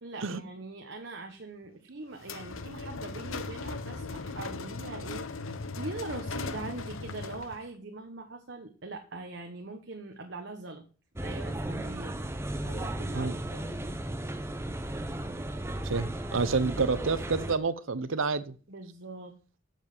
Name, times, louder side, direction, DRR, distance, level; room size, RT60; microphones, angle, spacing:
voice 1, 0.0-5.3 5.8-10.8 11.2-13.8 18.7-19.3, right 3 dB, 60° right, 3 dB, 1.2 m, -42 dB
sound 1, 2.2-7.7, left 3 dB, 80° left, 0.8 m, -38 dB
sound 2, 11.1-17.6, right 1 dB, 15° right, 0.8 m, -35 dB
voice 2, 15.8-18.5, right 4 dB, 80° right, 14 dB, 0.8 m, -29 dB
7.5 x 7.3 x 6.6 m, 0.38 s
head